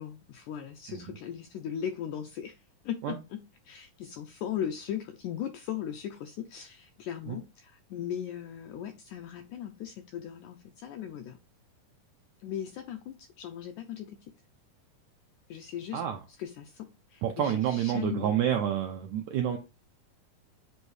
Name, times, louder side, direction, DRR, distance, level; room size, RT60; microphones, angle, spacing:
voice 1, 0.0-11.4 12.4-14.2 15.5-16.0 16.4-18.4, left 9 dB, 85° left, 1.7 m, -38 dB
voice 2, 17.2-19.6, right 9 dB, 80° right, 1.7 m, -28 dB
7.8 x 2.7 x 4.7 m
omnidirectional pair, 4.1 m